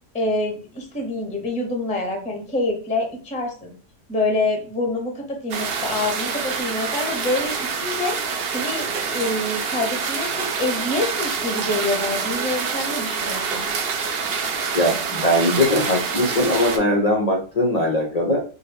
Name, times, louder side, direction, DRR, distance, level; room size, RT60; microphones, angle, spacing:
voice 1, 0.1-3.7 4.1-13.7, left 2 dB, 10° left, 2 dB, 0.4 m, -26 dB
sound 1, 5.5-16.8, right 5 dB, 65° right, 0.6 m, -26 dB
voice 2, 14.7-18.4, left 1 dB, 80° left, 0 dB, 0.3 m, -20 dB
4.3 x 2.2 x 3.4 m, 0.39 s
omnidirectional pair, 1.6 m